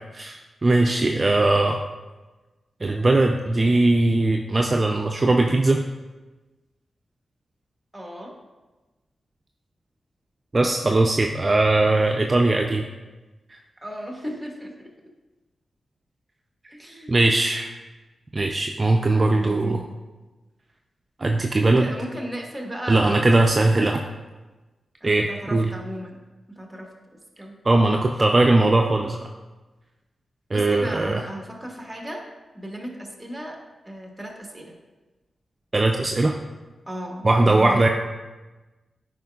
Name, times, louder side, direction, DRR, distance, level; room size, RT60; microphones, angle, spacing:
voice 1, 0.1-1.8 2.8-5.8 10.5-12.9 17.1-17.7 18.3-19.8 21.2-21.9 22.9-24.0 25.0-25.7 27.6-29.3 30.5-31.2 35.7-36.3 37.2-37.9, right 2 dB, 40° right, 2 dB, 0.4 m, -20 dB
voice 2, 0.9-1.2 7.9-8.3 13.8-14.9 16.7-17.1 19.3-19.9 21.6-23.6 25.0-26.2 26.5-27.5 30.5-32.3 32.5-33.6 33.8-34.7 36.9-37.9, equal, 5° right, 0 dB, 1.6 m, -36 dB
9.2 x 5.0 x 2.3 m, 1.2 s
cardioid pair, 45°, 0 cm